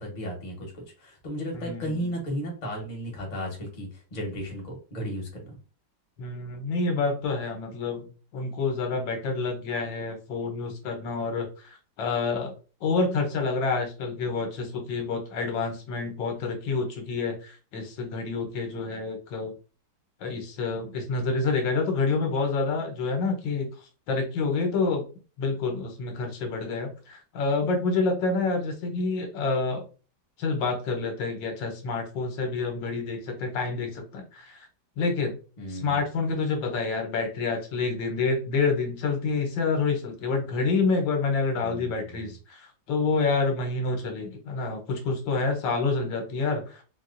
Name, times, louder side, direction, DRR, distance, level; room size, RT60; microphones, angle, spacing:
voice 1, 0.0-5.6 35.6-36.0 41.6-42.3, equal, 30° left, -1 dB, 0.8 m, -34 dB
voice 2, 1.5-2.1 6.2-8.1 8.3-12.5 12.8-19.5 20.2-23.7 24.1-25.0 25.4-29.8 30.4-34.7 35.0-35.3 35.7-46.8, left 4 dB, 70° left, 3 dB, 1.4 m, -28 dB
4.2 x 2.3 x 2.5 m, 0.35 s
omnidirectional pair, 2.1 m